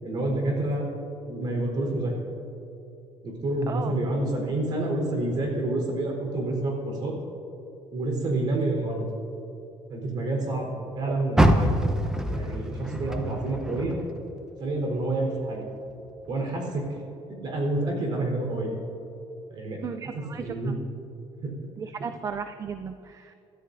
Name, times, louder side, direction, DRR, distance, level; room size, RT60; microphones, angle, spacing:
voice 1, 0.0-0.9 1.3-2.2 3.2-7.2 7.9-9.0 9.9-11.9 12.3-14.0 14.6-15.7 16.3-17.0 17.3-18.7 19.5-19.8 20.4-20.7 21.4-21.5, right 2 dB, 45° right, 0 dB, 4.1 m, -28 dB
voice 2, 3.7-4.0 11.1-11.2 19.8-20.7 21.8-23.3, right 6 dB, 30° right, 9 dB, 0.4 m, -35 dB
Car, 11.3-14.6 15.0-16.4 16.8-16.9 17.5-17.6, right 1 dB, 5° right, 0.8 m, -25 dB
26.0 x 13.0 x 2.7 m, 2.8 s
cardioid pair, 140°, 10 cm